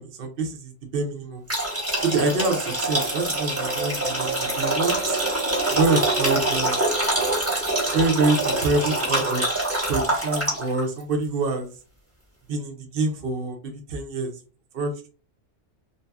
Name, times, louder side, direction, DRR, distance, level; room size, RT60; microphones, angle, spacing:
voice 1, 0.0-1.4 2.0-5.2 5.7-6.8 7.9-9.5 9.9-11.7 12.5-14.3 14.7-15.1, right 3 dB, 55° right, 3 dB, 0.8 m, -26 dB
sound 1, 1.5-10.8, right 2 dB, 15° right, 1.1 m, -25 dB
2.7 x 2.6 x 2.3 m, 0.35 s
omnidirectional pair, 1.2 m